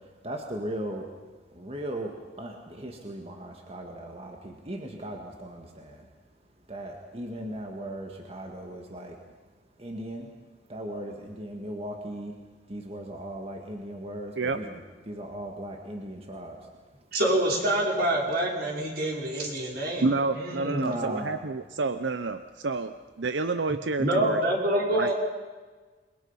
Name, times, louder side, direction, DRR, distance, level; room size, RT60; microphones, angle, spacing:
voice 1, 0.2-1.1 1.5-6.0 6.7-9.2 9.8-10.3 10.7-12.3 12.7-14.8 15.1-16.6 20.7-21.3, right 1 dB, 35° right, 2 dB, 2.0 m, -37 dB
voice 2, 17.1-20.0 20.4-20.8 24.0-25.1, right 1 dB, 55° right, -2 dB, 5.3 m, -26 dB
voice 3, 20.0-24.4 24.9-25.1, right 3 dB, 85° right, 10 dB, 0.8 m, -29 dB
28.5 x 22.0 x 5.8 m, 1.4 s
head